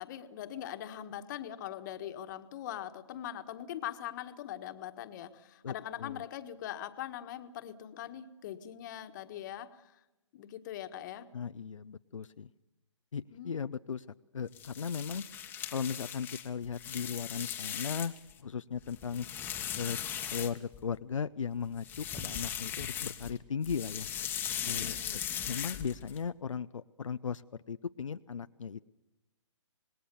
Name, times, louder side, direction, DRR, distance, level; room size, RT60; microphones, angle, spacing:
voice 1, 0.0-9.9 10.3-11.3 13.3-13.5 24.8-25.2, left 11 dB, 40° left, 9 dB, 1.6 m, -42 dB
voice 2, 5.6-6.2 11.3-12.5 13.1-14.1 14.3-15.2 15.7-18.1 18.4-19.3 19.8-20.0 20.3-24.1 24.6-28.8, left 6 dB, 85° left, 10 dB, 0.7 m, -37 dB
sound 1, 14.5-18.3 18.7-21.0 21.7-23.4 23.6-26.2, left 9 dB, 10° left, 1.4 m, -38 dB
27.0 x 20.0 x 7.0 m, 0.97 s
hypercardioid pair, 145°, 16 cm